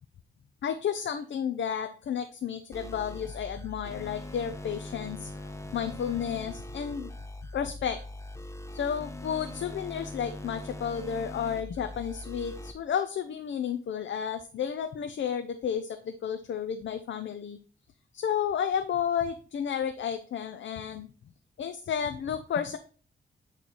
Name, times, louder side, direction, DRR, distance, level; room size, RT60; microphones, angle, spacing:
voice 1, 0.6-5.3 5.7-7.1 7.5-8.0 8.7-17.6 18.1-21.1 21.6-22.8, left 8 dB, 70° left, 8 dB, 0.6 m, -32 dB
sound 1, 2.7-12.7, left 2 dB, 15° left, 0.9 m, -41 dB
8.5 x 3.2 x 4.0 m, 0.40 s
cardioid pair, 70°, 20 cm